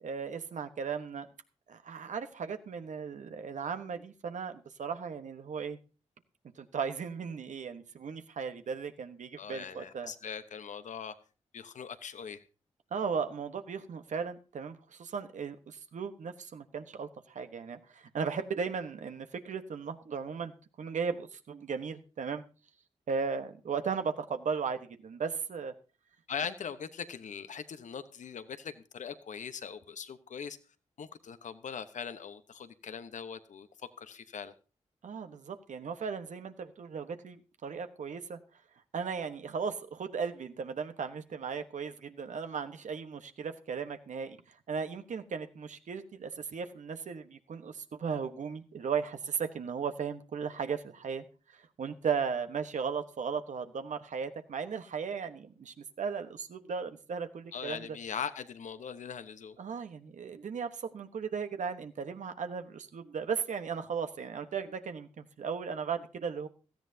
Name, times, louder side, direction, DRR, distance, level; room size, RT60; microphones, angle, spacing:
voice 1, 0.0-1.3 1.7-5.8 6.6-10.1 12.9-22.4 23.1-25.7 35.0-38.4 38.9-57.9 59.6-66.5, right 6 dB, 75° right, 9 dB, 1.2 m, -36 dB
voice 2, 9.4-11.1 11.5-12.4 26.3-30.6 31.0-34.5 57.5-59.6, left 7 dB, 80° left, 11 dB, 1.1 m, -41 dB
17.0 x 13.5 x 2.8 m, 0.35 s
cardioid pair, 55°, 13 cm